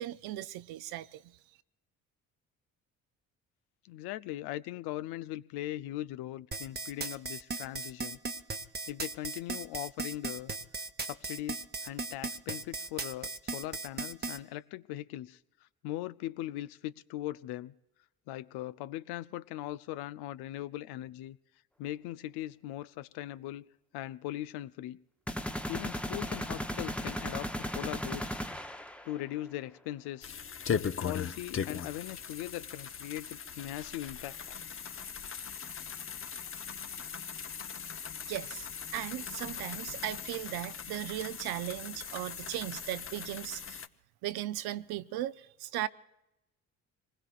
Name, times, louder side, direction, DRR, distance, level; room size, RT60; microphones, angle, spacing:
voice 1, 0.0-1.3 38.2-38.7 38.9-43.8 44.2-45.9, right 14 dB, 65° right, 0.7 m, -37 dB
voice 2, 3.8-8.2 8.9-10.5 11.0-17.7 18.3-21.4 21.8-23.7 23.9-25.0 25.7-28.4 29.0-30.4 31.0-34.6, left 14 dB, 65° left, 0.6 m, -40 dB
sound 1, 6.5-14.4, right 3 dB, 25° right, 1.0 m, -37 dB
sound 2, 25.3-29.2, equal, 5° left, 0.8 m, -36 dB
sound 3, 30.2-43.9, left 7 dB, 30° left, 0.8 m, -39 dB
26.5 x 20.5 x 2.5 m
hypercardioid pair, 50°, 41 cm